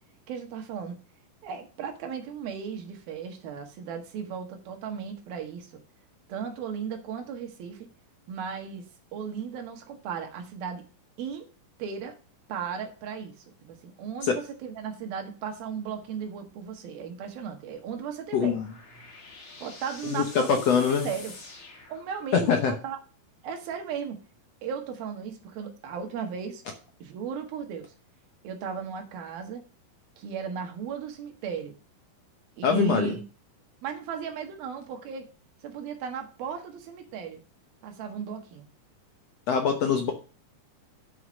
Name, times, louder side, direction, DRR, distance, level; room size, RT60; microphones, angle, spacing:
voice 1, 0.3-1.0 1.4-5.8 6.3-7.9 8.3-8.9 9.1-10.8 11.2-11.5 11.8-12.2 12.5-18.6 19.6-21.3 21.9-23.0 23.4-24.2 24.6-26.6 27.0-27.9 28.4-29.6 30.2-31.7 32.6-33.2 33.8-35.3 35.6-37.4 37.8-38.7 39.8-40.1, right 7 dB, 80° right, 4 dB, 3.4 m, -36 dB
sound 1, 18.0-22.6, left 3 dB, 40° left, 2.5 m, -47 dB
voice 2, 18.3-18.6 20.1-21.1 22.3-22.7 32.6-33.1 39.5-40.1, left 6 dB, 75° left, 4 dB, 1.5 m, -23 dB
7.6 x 6.1 x 6.3 m, 0.36 s
omnidirectional pair, 4.2 m